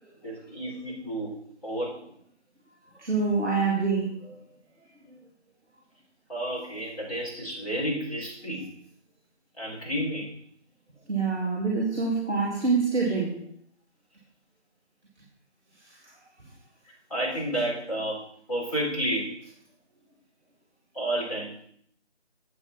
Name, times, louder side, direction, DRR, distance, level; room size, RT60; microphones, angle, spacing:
voice 1, 0.2-1.3 1.6-2.0 6.3-8.7 9.6-10.3 16.9-18.2 18.5-19.3 20.9-21.5, right 1 dB, 30° left, -5 dB, 3.7 m, -31 dB
voice 2, 2.9-4.4 5.1-5.2 11.1-13.4 15.9-16.0, right 4 dB, 5° left, -17 dB, 1.2 m, -26 dB
8.1 x 7.8 x 4.3 m, 0.63 s
figure-of-eight pair, 170°, 35 cm